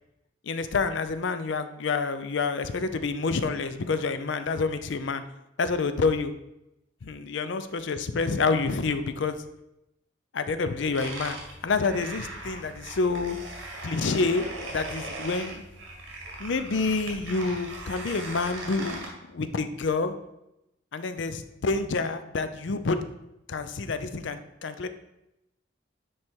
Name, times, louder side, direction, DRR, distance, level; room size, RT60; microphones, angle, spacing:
voice 1, 0.4-5.2 5.6-6.3 7.0-9.4 10.3-11.4 11.6-13.4 13.8-15.6 16.4-20.1 20.9-23.0 23.5-24.9, left 4 dB, 65° left, 10 dB, 0.5 m, -28 dB
sound 1, 10.9-19.1, right 2 dB, 75° right, 2.0 m, -39 dB
9.5 x 3.3 x 4.4 m, 0.88 s
head